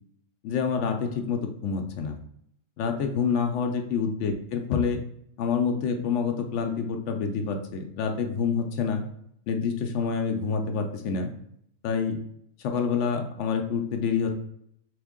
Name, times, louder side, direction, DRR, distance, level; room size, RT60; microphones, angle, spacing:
voice 1, 0.4-2.2 2.8-5.0 5.4-9.0 9.5-11.3 11.8-12.2 12.6-14.3, left 6 dB, 70° left, 5 dB, 0.8 m, -27 dB
3.5 x 3.2 x 3.6 m, 0.71 s
omnidirectional pair, 1.3 m